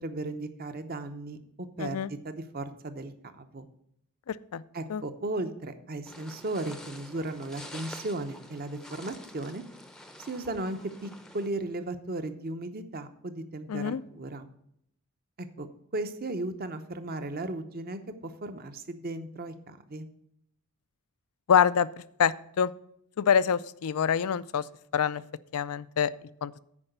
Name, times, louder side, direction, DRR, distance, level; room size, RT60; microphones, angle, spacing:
voice 1, 0.0-3.7 4.7-9.6 10.2-14.5 15.4-15.7 15.9-20.1, right 2 dB, 40° right, 9 dB, 0.8 m, -36 dB
voice 2, 1.8-2.1 4.3-4.6 4.9-5.0 13.7-14.0 21.5-21.9 22.2-22.7 23.2-24.6 24.9-25.2 25.5-26.1 26.4-26.6, left 7 dB, 80° left, 18 dB, 0.4 m, -25 dB
sound 1, 6.1-11.5, left 1 dB, 5° left, 0.6 m, -47 dB
9.7 x 4.9 x 6.7 m, 0.73 s
head